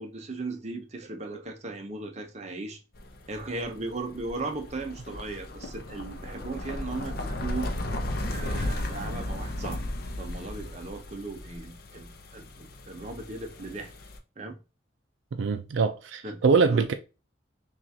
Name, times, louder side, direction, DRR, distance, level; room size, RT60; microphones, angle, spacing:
voice 1, 0.0-2.8 3.3-7.7 8.3-9.9 10.2-13.9 14.4-14.6 16.2-16.8, right 3 dB, 35° right, 0.7 m, -37 dB
sound 1, 2.9-14.2, left 1 dB, 50° left, 0.6 m, -35 dB
voice 2, 15.3-16.9, right 5 dB, 70° right, 0.4 m, -23 dB
5.9 x 2.4 x 2.7 m
head